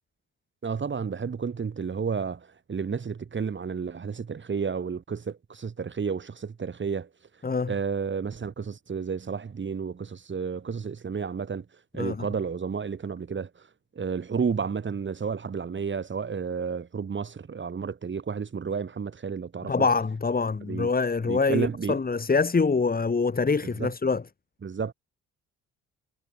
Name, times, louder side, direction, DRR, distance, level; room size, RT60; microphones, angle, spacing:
voice 1, 0.6-2.4 2.7-7.1 7.7-11.6 11.9-13.5 14.0-19.9 20.6-20.9 21.2-22.0 23.6-23.9 24.6-24.9, right 6 dB, 40° right, 4.2 m, -31 dB
voice 2, 7.4-7.7 12.0-12.3 19.7-24.2, left 4 dB, 30° left, 5.6 m, -25 dB
cardioid pair, 90°, 30 cm